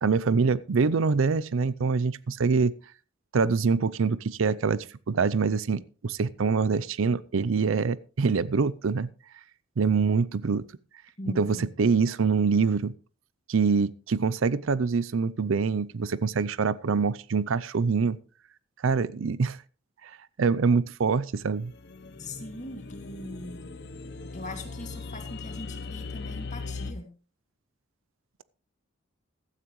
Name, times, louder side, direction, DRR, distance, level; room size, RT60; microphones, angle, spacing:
voice 1, 0.0-2.7 3.3-9.1 9.8-10.7 11.3-12.9 13.5-18.2 18.8-19.6 20.0-20.1 20.4-21.7, right 5 dB, 70° right, 0.5 m, -25 dB
voice 2, 11.2-11.7 22.2-23.7 24.3-27.1, left 2 dB, 35° left, 2.4 m, -40 dB
sound 1, 21.6-26.9, left 3 dB, 50° left, 0.8 m, -39 dB
15.5 x 12.5 x 3.1 m
head